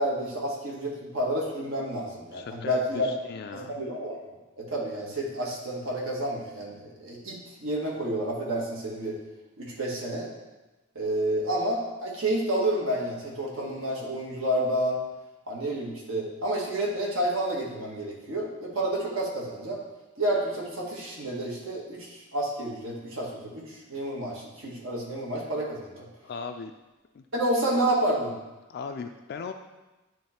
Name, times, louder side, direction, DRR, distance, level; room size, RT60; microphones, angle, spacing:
voice 1, 0.0-3.1 3.5-9.2 9.6-10.3 10.9-15.0 15.5-19.8 20.2-26.1 27.3-28.3, right 1 dB, 70° right, -3 dB, 1.6 m, -30 dB
voice 2, 2.3-3.8 26.2-26.7 27.1-27.2 28.7-29.5, left 5 dB, 50° left, 5 dB, 0.3 m, -37 dB
9.2 x 3.1 x 4.3 m, 1.1 s
head